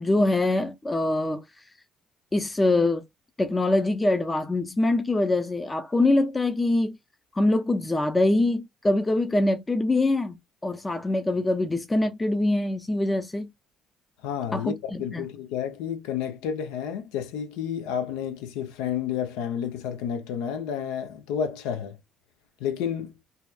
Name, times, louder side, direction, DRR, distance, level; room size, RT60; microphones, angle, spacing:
voice 1, 0.0-1.4 2.3-3.0 3.4-7.0 7.3-10.4 10.6-13.5 14.5-15.3, left 2 dB, 20° left, 0.5 m, -24 dB
voice 2, 14.2-22.0 22.6-23.2, left 8 dB, 85° left, 0.5 m, -30 dB
2.7 x 2.3 x 2.2 m
supercardioid pair, 65°, 0 cm